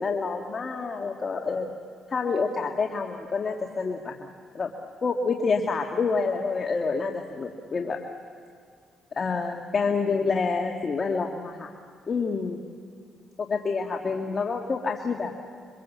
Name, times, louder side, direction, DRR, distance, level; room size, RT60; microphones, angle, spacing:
voice 1, 0.0-1.7 2.1-4.7 5.0-8.0 9.2-11.7 12.1-12.6 13.4-15.3, left 4 dB, 40° left, 2 dB, 2.0 m, -28 dB
27.5 x 25.0 x 7.4 m, 2.2 s
cardioid pair, 90°, 0 cm